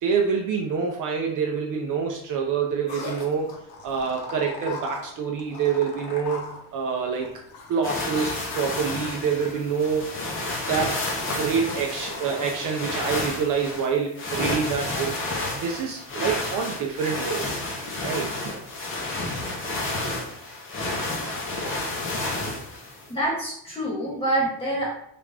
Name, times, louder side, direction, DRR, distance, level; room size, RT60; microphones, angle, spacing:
voice 1, 0.0-3.5 3.8-7.3 7.7-10.1 10.7-11.0 11.3-15.1 15.5-17.5 18.0-18.5, right 6 dB, 50° right, 1 dB, 0.5 m, -26 dB
sound 1, 2.9-13.8, left 4 dB, 60° left, 0.8 m, -41 dB
sound 2, 7.8-23.1, left 2 dB, 30° left, 0.6 m, -31 dB
voice 2, 23.1-24.9, right 1 dB, 15° left, -6 dB, 1.1 m, -26 dB
3.4 x 2.5 x 3.2 m, 0.71 s
cardioid pair, 165°, 42 cm